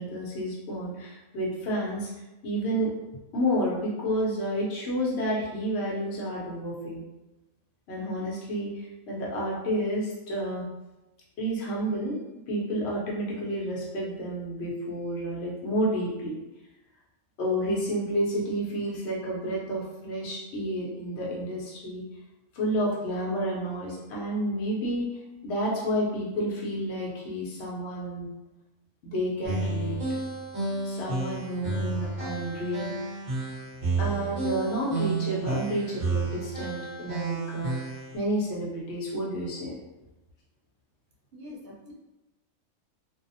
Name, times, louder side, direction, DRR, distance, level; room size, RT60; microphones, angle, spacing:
voice 1, 0.0-2.1 2.4-2.9 3.3-7.0 7.9-10.7 11.4-12.2 12.5-16.3 17.4-22.1 22.5-25.1 25.4-28.3 29.0-30.0 30.8-33.2 34.0-37.7 38.1-39.8 41.8-41.9, equal, 60° left, -4 dB, 1.0 m, -30 dB
sound 1, 29.4-38.2, right 3 dB, 30° right, 1.0 m, -31 dB
voice 2, 41.3-41.9, left 1 dB, 65° right, -2 dB, 0.8 m, -44 dB
2.6 x 2.0 x 2.7 m, 1.0 s
omnidirectional pair, 1.4 m